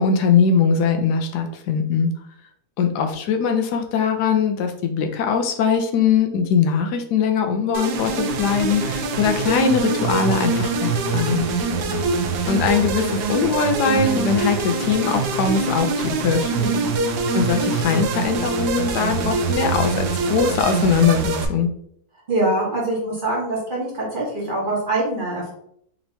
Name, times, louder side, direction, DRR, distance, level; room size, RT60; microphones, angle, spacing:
voice 1, 0.0-2.1 2.8-11.5 12.5-16.5 17.3-21.7, left 6 dB, 90° left, 5 dB, 1.2 m, -21 dB
sound 1, 7.7-21.5, right 4 dB, 85° right, 1.2 m, -24 dB
voice 2, 16.5-16.9 22.3-25.5, right 2 dB, 35° right, -4 dB, 1.1 m, -24 dB
4.4 x 3.0 x 2.7 m, 0.68 s
omnidirectional pair, 1.7 m